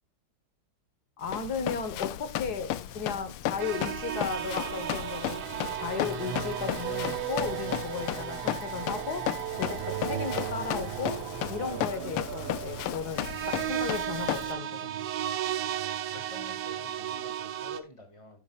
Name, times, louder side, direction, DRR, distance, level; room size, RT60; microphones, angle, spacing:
Run, 1.2-14.5, left 12 dB, 90° left, 1.6 m, -35 dB
voice 1, 1.2-5.4 5.7-9.3 9.6-15.0, left 5 dB, 50° left, 9 dB, 2.0 m, -35 dB
sound 1, 3.6-17.8, right 10 dB, 90° right, 1.9 m, -36 dB
sound 2, 4.3-13.8, right 14 dB, 70° right, 1.3 m, -38 dB
voice 2, 16.1-18.4, left 2 dB, 15° left, 6 dB, 2.2 m, -48 dB
11.5 x 9.5 x 2.5 m, 0.28 s
omnidirectional pair, 2.4 m